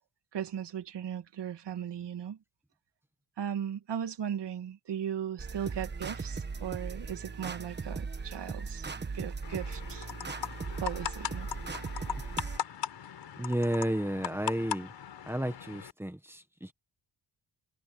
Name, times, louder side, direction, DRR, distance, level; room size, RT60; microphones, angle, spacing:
voice 1, 0.3-2.4 3.4-8.9 9.1-10.1 10.8-11.5, right 9 dB, 65° right, 2.2 m, -37 dB
sound 1, 5.4-12.6, right 4 dB, 25° right, 1.3 m, -38 dB
sound 2, 9.4-15.9, left 8 dB, 70° left, 4.5 m, -39 dB
voice 2, 13.4-14.9 15.3-16.7, right 1 dB, 5° right, 1.6 m, -32 dB
wide cardioid pair, 155°, 44 cm